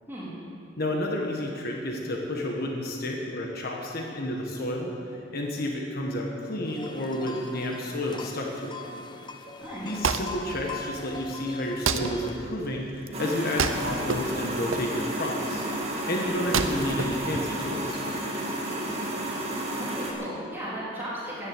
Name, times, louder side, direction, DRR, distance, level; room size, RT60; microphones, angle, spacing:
voice 1, 0.8-4.9 5.3-8.8 9.8-15.6 16.1-18.1, left 1 dB, 50° left, 0 dB, 1.5 m, -31 dB
sound 1, 6.7-12.4, left 3 dB, 25° left, 0.8 m, -41 dB
Wood, 9.6-18.0, right 5 dB, 80° right, 0.7 m, -32 dB
sound 2, 13.1-20.1, right 1 dB, 30° right, 2.4 m, -31 dB
voice 2, 19.8-21.5, equal, 10° right, -8 dB, 3.6 m, -36 dB
13.5 x 10.5 x 7.8 m, 2.7 s
head